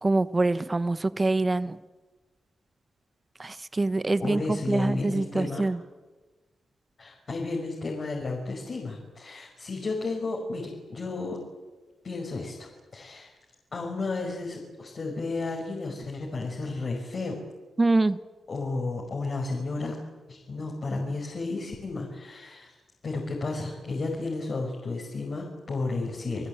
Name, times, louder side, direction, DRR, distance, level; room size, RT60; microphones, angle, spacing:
voice 1, 0.0-1.8 3.4-5.8 17.8-18.2, right 2 dB, 25° right, 14 dB, 1.0 m, -25 dB
voice 2, 4.2-5.6 7.0-11.4 12.0-13.3 13.7-17.4 18.5-20.0 20.3-22.8 23.0-26.5, left 3 dB, 45° left, -1 dB, 5.5 m, -32 dB
29.0 x 20.0 x 9.0 m, 1.2 s
wide cardioid pair, 110°, 0 cm